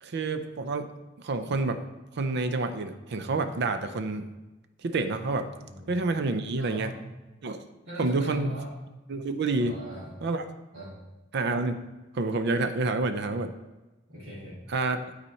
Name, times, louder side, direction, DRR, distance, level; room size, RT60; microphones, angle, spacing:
voice 1, 0.0-0.9 1.2-1.8 2.1-4.3 4.8-5.5 5.9-6.9 7.4-7.6 8.0-8.5 9.1-9.8 10.2-10.4 11.3-11.9 12.1-13.5 14.7-15.0, right 3 dB, 55° right, 9 dB, 0.5 m, -28 dB
voice 2, 5.6-5.9 6.6-7.0 7.9-8.7 9.5-10.1 10.7-10.9 14.1-14.6, equal, 85° right, -11 dB, 2.3 m, -39 dB
9.8 x 4.2 x 4.4 m, 1.1 s
head